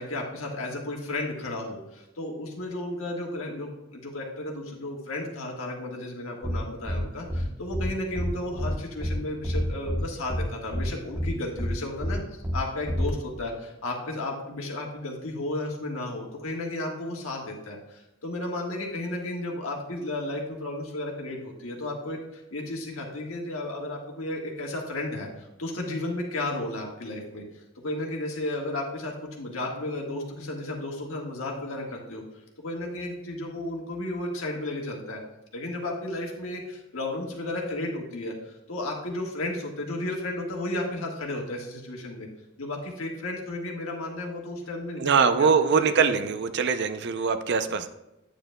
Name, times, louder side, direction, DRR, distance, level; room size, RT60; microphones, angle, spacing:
voice 1, 0.0-32.2 32.6-35.2 35.5-42.3 42.6-46.2, left 2 dB, 85° left, 0 dB, 1.5 m, -33 dB
sound 1, 6.4-6.6 6.9-7.0 7.3-7.4 7.7-7.9 8.2-8.3 8.6-8.7 9.0-9.1 9.4-10.0 10.3-10.4 10.7-10.9 11.2-11.3 11.6-11.7 12.0-12.1 12.4-12.6 12.9-13.1, equal, 15° right, 1.0 m, -28 dB
voice 2, 45.0-47.9, right 5 dB, 55° right, 10 dB, 0.5 m, -23 dB
8.8 x 7.7 x 2.2 m, 0.97 s
head